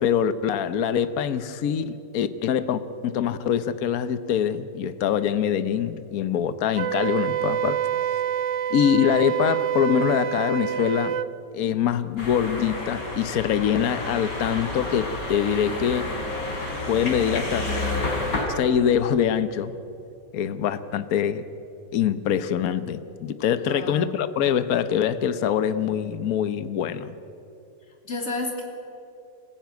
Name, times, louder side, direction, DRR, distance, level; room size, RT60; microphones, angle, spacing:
voice 1, 0.0-7.8 8.7-11.2 11.5-16.1 16.9-17.8 18.5-19.7 20.3-21.4 21.9-27.1, left 9 dB, 60° left, 12 dB, 1.3 m, -24 dB
Wind instrument woodwind instrument, 6.7-11.3, right 10 dB, 60° right, 0.8 m, -26 dB
sound 1, 12.2-18.5, left 2 dB, 80° left, 4.5 m, -30 dB
voice 2, 23.6-24.1 28.0-28.6, left 2 dB, 40° left, 2 dB, 3.3 m, -31 dB
27.0 x 15.0 x 9.4 m, 2.8 s
omnidirectional pair, 1.8 m